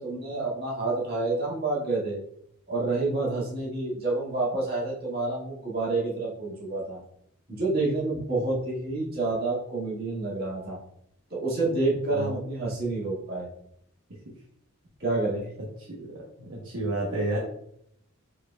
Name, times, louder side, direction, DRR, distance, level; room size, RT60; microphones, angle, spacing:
voice 1, 0.0-2.2 2.7-7.0 7.5-10.8 11.3-13.5 15.0-15.5, right 2 dB, 45° right, -5 dB, 1.8 m, -28 dB
voice 2, 15.9-17.4, right 2 dB, 70° right, -4 dB, 0.9 m, -31 dB
4.8 x 4.3 x 2.3 m, 0.71 s
head